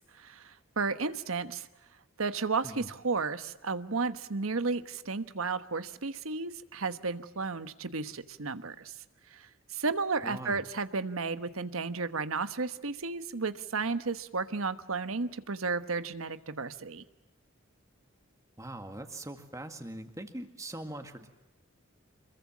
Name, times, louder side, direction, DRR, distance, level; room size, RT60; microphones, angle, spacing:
voice 1, 0.0-1.7 2.2-8.9 9.3-17.0, right 4 dB, 85° right, 11 dB, 1.2 m, -33 dB
voice 2, 10.2-10.6 18.6-21.3, right 1 dB, 15° right, 6 dB, 1.9 m, -42 dB
26.0 x 22.5 x 7.4 m, 0.99 s
head